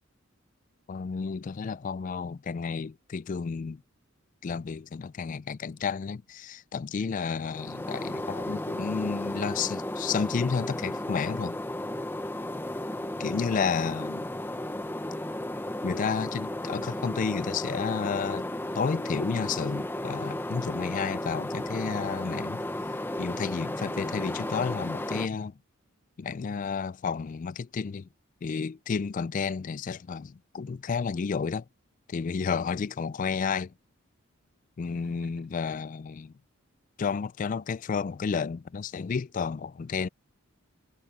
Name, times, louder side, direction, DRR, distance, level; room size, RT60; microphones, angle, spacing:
voice 1, 0.9-3.8 4.4-11.6 13.2-14.2 15.8-18.5 18.8-22.6 23.2-25.6 26.2-28.1 28.4-31.6 32.1-33.7 34.8-36.3 37.0-40.1, left 5 dB, 35° left, 0.3 m, -31 dB
sound 1, 7.4-25.3, left 1 dB, 10° left, 0.7 m, -34 dB
voice 2, 34.9-35.5, right 1 dB, 50° right, 7.5 m, -57 dB
head